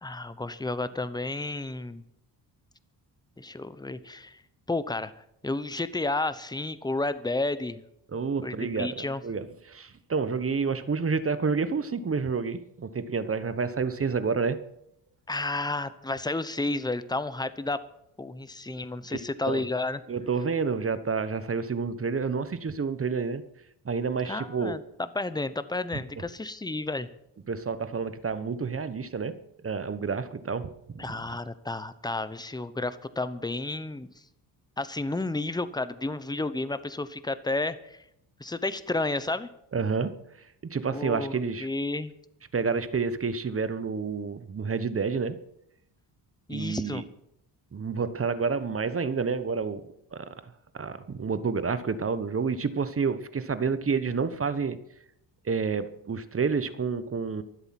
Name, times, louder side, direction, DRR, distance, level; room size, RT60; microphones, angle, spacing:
voice 1, 0.0-2.0 3.4-4.4 4.7-5.1 5.4-7.8 8.4-9.2 15.3-17.8 18.2-20.0 24.2-24.8 25.1-27.1 31.0-34.1 34.8-38.0 38.4-39.5 40.9-41.3 41.6-42.1 46.5-47.0, left 2 dB, 10° left, 14 dB, 0.9 m, -31 dB
voice 2, 8.1-14.6 19.1-19.7 20.1-23.4 23.8-24.8 25.9-26.0 27.5-31.3 39.7-40.2 40.6-41.7 42.5-45.4 46.5-47.0 47.7-50.4 50.7-54.8 55.4-57.4, right 5 dB, 30° right, 13 dB, 1.1 m, -29 dB
24.0 x 8.0 x 5.9 m, 0.77 s
cardioid pair, 100°, 44 cm